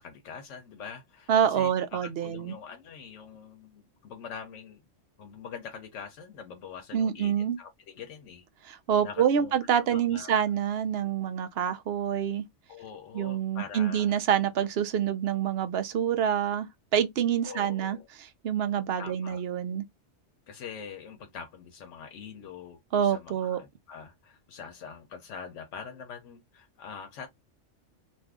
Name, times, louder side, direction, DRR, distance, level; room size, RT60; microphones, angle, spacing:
voice 1, 0.0-4.8 5.2-8.4 9.0-9.5 9.8-10.5 12.7-14.2 17.4-18.1 19.0-19.4 20.5-27.3, left 6 dB, 85° left, 1.0 m, -44 dB
voice 2, 1.3-2.5 6.9-7.6 8.6-12.4 13.1-16.7 16.9-19.8 22.9-23.6, right 8 dB, 65° right, 0.8 m, -27 dB
2.7 x 2.5 x 3.5 m
omnidirectional pair, 1.2 m